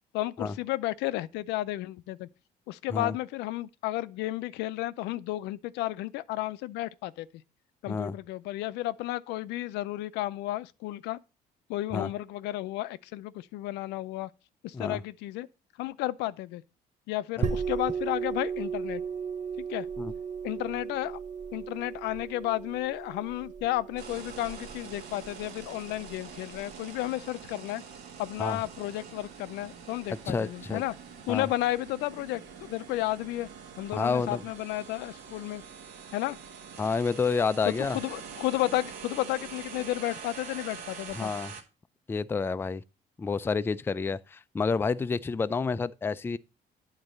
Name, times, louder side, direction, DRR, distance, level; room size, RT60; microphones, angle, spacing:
voice 1, 0.1-2.3 2.7-7.3 7.8-11.2 11.7-14.3 14.6-15.5 15.8-16.6 17.1-19.0 19.7-19.9 20.4-21.2 21.5-27.8 28.2-30.9 31.3-33.5 33.8-35.6 36.1-36.4 37.8-41.3, left 16 dB, 85° left, 0.4 m, -32 dB
sound 1, 17.4-26.8, right 6 dB, 45° right, 0.7 m, -36 dB
sound 2, 24.0-41.6, right 6 dB, 80° right, 1.5 m, -45 dB
voice 2, 30.3-30.8 31.3-31.5 33.9-34.4 36.8-38.0 41.1-41.5 42.1-42.8 43.2-46.4, left 4 dB, 15° left, 0.3 m, -29 dB
9.0 x 4.0 x 6.3 m
cardioid pair, 110°, 17 cm